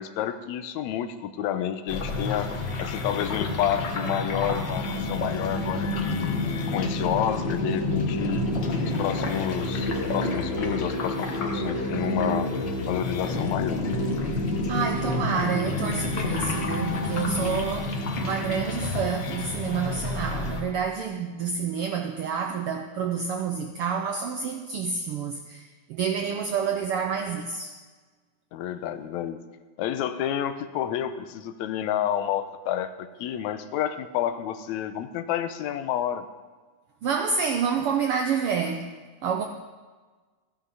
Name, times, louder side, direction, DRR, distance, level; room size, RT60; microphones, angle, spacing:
voice 1, 0.0-2.5 2.8-8.5 8.8-12.5 12.9-13.8 28.5-29.4 29.8-36.3, left 10 dB, 80° left, 11 dB, 2.0 m, -30 dB
sound 1, 1.9-20.6, left 2 dB, 50° left, 1.5 m, -28 dB
voice 2, 14.7-27.7 37.0-39.5, right 6 dB, 80° right, 4 dB, 1.3 m, -28 dB
15.0 x 10.0 x 5.5 m, 1.4 s
omnidirectional pair, 3.4 m